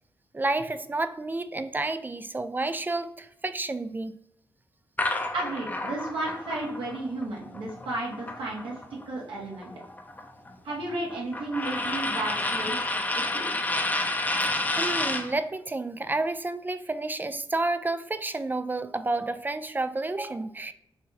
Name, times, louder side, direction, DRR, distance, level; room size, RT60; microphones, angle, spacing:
voice 1, 0.3-4.2 14.4-20.7, right 2 dB, 20° right, 11 dB, 0.3 m, -30 dB
sound 1, 5.0-9.0 9.4-15.3, left 2 dB, 20° left, 0.6 m, -30 dB
voice 2, 5.3-8.7 9.0-9.7 10.6-12.8 13.1-13.4, right 2 dB, 80° right, -3 dB, 1.6 m, -33 dB
4.2 x 2.7 x 4.0 m, 0.78 s
cardioid pair, 70°, 9 cm